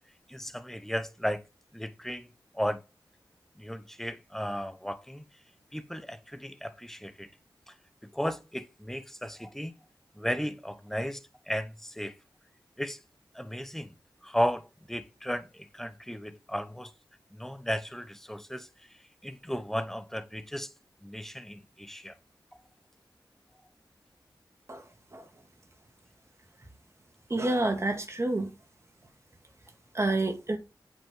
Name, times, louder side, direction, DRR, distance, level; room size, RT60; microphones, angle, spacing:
voice 1, 0.3-1.4 1.7-2.3 2.5-2.8 3.6-5.2 5.7-7.3 7.7-7.8 8.0-9.7 10.2-12.1 12.8-13.0 13.3-13.9 14.2-16.9 17.3-18.7 19.2-20.7 21.0-22.1 22.5-22.6, equal, 5° left, 1.0 m, -35 dB
voice 2, 27.3-28.5 29.9-30.6, right 2 dB, 35° right, 2.1 m, -28 dB
8.5 x 5.9 x 3.6 m
wide cardioid pair, 80°, 8 cm